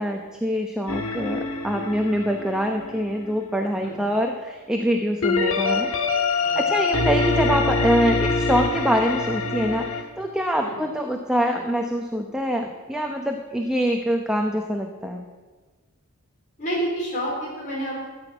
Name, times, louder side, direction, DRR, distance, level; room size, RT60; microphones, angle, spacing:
voice 1, 0.0-5.9 6.6-15.3, equal, 5° right, 3 dB, 0.7 m, -24 dB
sound 1, 0.9-3.3 5.2-10.0, left 3 dB, 65° left, 1.4 m, -24 dB
voice 2, 16.6-18.0, right 1 dB, 35° left, -5 dB, 3.6 m, -28 dB
14.0 x 6.2 x 10.0 m, 1.3 s
head